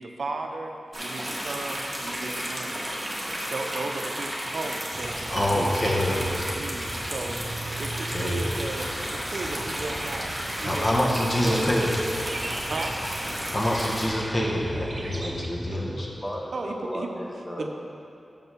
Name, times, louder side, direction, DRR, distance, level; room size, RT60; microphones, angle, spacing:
voice 1, 0.0-2.8 3.5-11.9 12.7-13.0 16.5-17.1 17.6-17.7, right 3 dB, 80° right, 4 dB, 0.6 m, -35 dB
sound 1, 0.9-14.1, equal, 5° right, 1.8 m, -33 dB
Birds & Cars, 4.9-15.5, right 1 dB, 40° right, 0.8 m, -38 dB
voice 2, 5.3-6.3 8.1-8.4 10.7-11.9 13.5-16.1, left 1 dB, 35° left, -2 dB, 1.3 m, -26 dB
voice 3, 16.2-17.7, equal, 15° left, -2 dB, 1.3 m, -35 dB
7.0 x 5.7 x 5.6 m, 2.8 s
wide cardioid pair, 75°, 0 cm